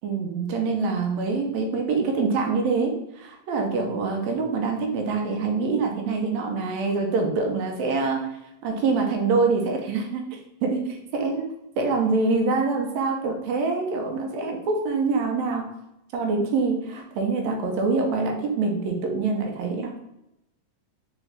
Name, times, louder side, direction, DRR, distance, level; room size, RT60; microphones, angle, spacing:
voice 1, 0.0-8.3 8.6-10.2 10.6-11.5 11.8-15.7 16.1-20.0, right 4 dB, 75° right, 2 dB, 1.9 m, -25 dB
4.9 x 2.7 x 3.2 m, 0.86 s
omnidirectional pair, 3.4 m